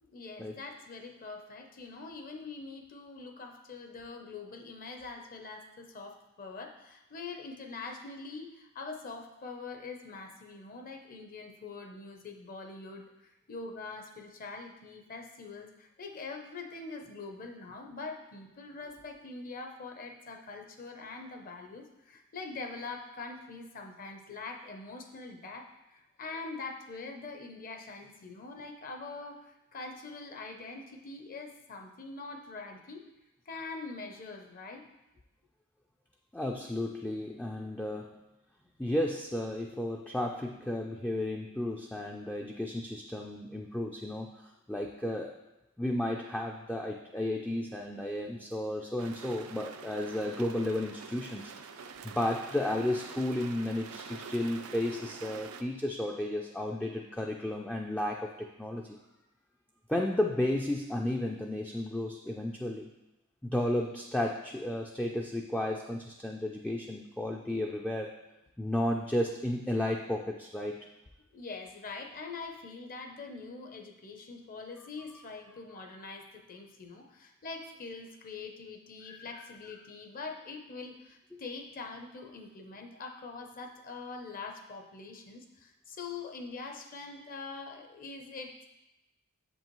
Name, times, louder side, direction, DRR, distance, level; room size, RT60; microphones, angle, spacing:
voice 1, 0.0-33.1 33.5-34.9 71.3-88.6, left 3 dB, 40° left, 4 dB, 0.6 m, -44 dB
voice 2, 36.3-38.2 38.8-45.4 45.8-59.0 59.9-62.9 63.4-68.2 68.6-70.9, left 1 dB, 5° left, 0 dB, 0.3 m, -33 dB
sound 1, 49.0-55.6, right 6 dB, 80° right, 0.5 m, -46 dB
7.1 x 5.4 x 3.0 m, 0.97 s
head